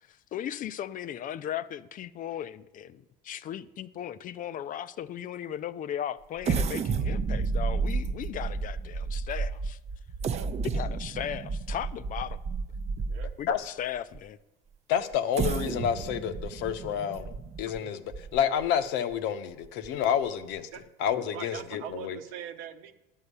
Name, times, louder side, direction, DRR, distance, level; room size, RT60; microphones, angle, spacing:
voice 1, 0.1-9.8 10.7-12.4 13.4-14.4, left 10 dB, 45° left, 0.5 m, -37 dB
sound 1, 6.4-13.6 14.1-14.2 15.1-18.7 19.1-19.2 19.6-19.9, right 4 dB, 35° right, 0.7 m, -31 dB
voice 2, 14.9-17.3 17.6-20.7 21.0-22.2, left 8 dB, 70° left, 0.9 m, -29 dB
voice 3, 21.3-22.9, right 9 dB, 80° right, 1.0 m, -41 dB
10.5 x 5.6 x 8.1 m
supercardioid pair, 95°, 19 cm